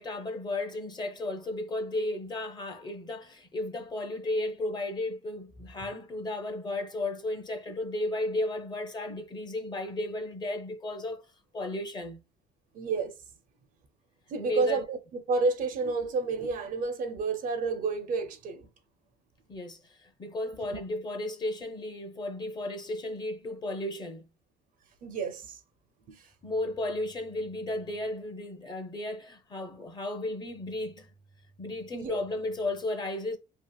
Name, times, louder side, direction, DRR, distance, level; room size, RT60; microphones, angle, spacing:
voice 1, 0.0-11.3 11.5-12.2 14.4-14.8 19.5-24.3 26.4-31.1 31.6-33.4, left 2 dB, 25° left, 0.6 m, -34 dB
voice 2, 12.7-13.2 14.3-18.7 20.5-20.8 25.0-25.6 26.1-26.3 31.9-32.2, right 4 dB, 50° right, 0.5 m, -30 dB
2.8 x 2.4 x 2.2 m
cardioid pair, 110°, 17 cm